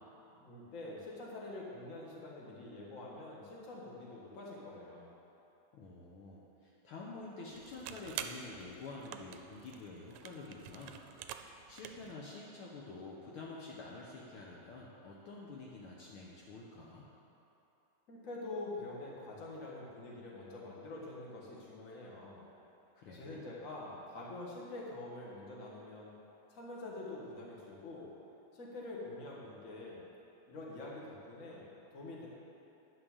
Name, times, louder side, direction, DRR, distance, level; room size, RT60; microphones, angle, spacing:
voice 1, 0.4-5.1 18.1-22.4 23.1-26.1 26.5-28.1 28.5-30.0 30.5-32.3, left 2 dB, 35° left, -4 dB, 1.3 m, -46 dB
voice 2, 5.7-11.0 11.7-17.1 22.9-23.4, left 3 dB, 80° left, -4 dB, 1.2 m, -48 dB
sound 1, 7.5-12.1, right 9 dB, 80° right, 1.8 m, -47 dB
10.0 x 6.2 x 7.2 m, 2.9 s
omnidirectional pair, 3.7 m